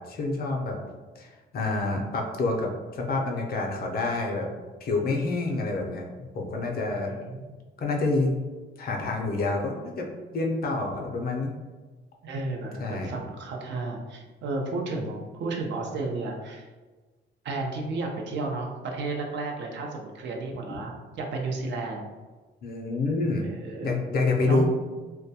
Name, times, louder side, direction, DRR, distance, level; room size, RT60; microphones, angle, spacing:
voice 1, 0.1-0.8 1.2-4.5 4.8-6.1 6.3-7.1 7.8-8.4 8.8-10.1 10.3-11.5 12.8-13.1 22.6-23.5 23.8-24.7, left 3 dB, 50° left, 1 dB, 0.5 m, -27 dB
voice 2, 1.6-2.0 7.1-7.4 12.2-16.7 17.4-22.1 23.4-24.0 24.5-24.7, right 3 dB, 65° right, 1 dB, 0.5 m, -33 dB
2.2 x 2.1 x 2.7 m, 1.3 s
cardioid pair, 90°, 20 cm